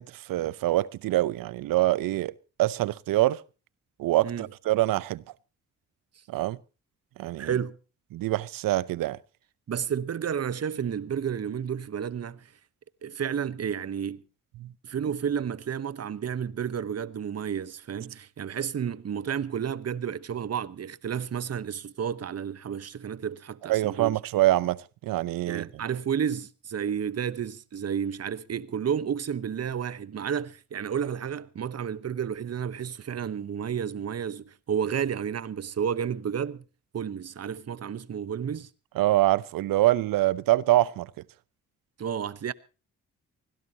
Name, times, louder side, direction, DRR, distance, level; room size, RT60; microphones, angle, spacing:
voice 1, 0.0-2.3 2.6-3.4 4.0-5.2 6.3-6.6 7.2-7.5 8.1-9.2 14.6-14.7 23.7-25.7 39.0-41.1, right 16 dB, 90° right, 0.7 m, -25 dB
voice 2, 7.4-7.8 9.7-12.5 13.0-14.2 14.8-24.2 25.5-36.6 36.9-38.7 42.0-42.5, right 8 dB, 50° right, 1.0 m, -31 dB
24.0 x 17.0 x 2.8 m
cardioid pair, 70°, 33 cm